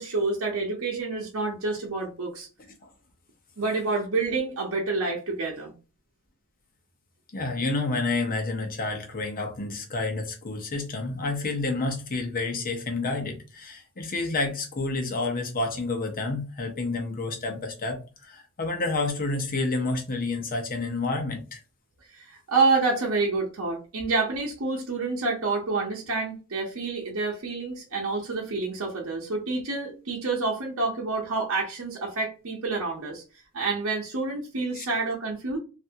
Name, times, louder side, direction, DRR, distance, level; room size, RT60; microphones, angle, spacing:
voice 1, 0.0-2.5 3.6-5.7 22.1-33.2 33.5-35.6, right 3 dB, 70° right, 0.8 m, -28 dB
voice 2, 7.3-21.6 34.7-34.8, left 3 dB, 40° left, 0.8 m, -29 dB
3.3 x 2.6 x 2.8 m
head